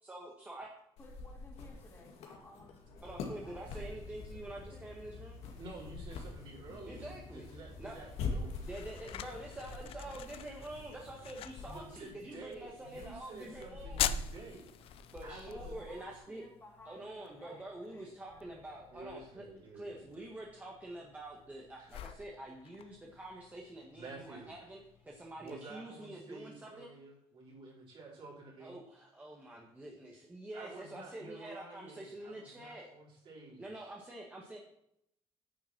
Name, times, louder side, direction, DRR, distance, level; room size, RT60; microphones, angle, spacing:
voice 1, 0.0-0.7 3.0-5.4 6.8-7.5 7.8-8.1 8.6-14.2 15.1-16.4 16.8-19.5 19.7-26.9 28.6-32.9 33.6-34.6, right 1 dB, 15° right, -2 dB, 1.5 m, -47 dB
sound 1, 1.0-16.2, left 3 dB, 85° left, 2.1 m, -46 dB
voice 2, 1.0-3.0 3.3-4.1 4.7-4.9 15.5-18.6, left 2 dB, 25° left, -1 dB, 2.6 m, -57 dB
sound 2, 2.9-11.9, left 2 dB, 40° left, 3.3 m, -52 dB
voice 3, 5.6-8.7 11.6-14.7 15.2-15.7 18.9-20.2 21.8-21.9 23.9-24.5 25.4-28.8 30.5-33.9, right 2 dB, 55° right, -4 dB, 4.7 m, -50 dB
sound 3, 8.0-25.5, left 12 dB, 65° left, 0.6 m, -46 dB
9.9 x 7.2 x 6.0 m, 0.76 s
cardioid pair, 135°, 10 cm